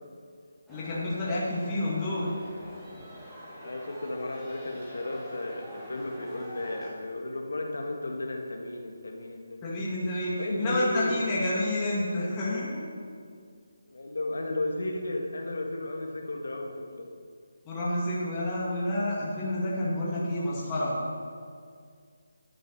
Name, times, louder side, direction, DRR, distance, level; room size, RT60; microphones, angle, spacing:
voice 1, 0.7-2.3 9.6-12.8 17.7-20.9, left 1 dB, 15° left, -8 dB, 2.2 m, -29 dB
sound 1, 0.7-6.9, equal, ahead, 2.4 m, -45 dB
voice 2, 3.6-9.9 10.4-11.2 13.9-17.1, left 2 dB, 80° left, 1 dB, 1.8 m, -34 dB
10.5 x 9.1 x 6.9 m, 2.1 s
hypercardioid pair, 170°, 0 cm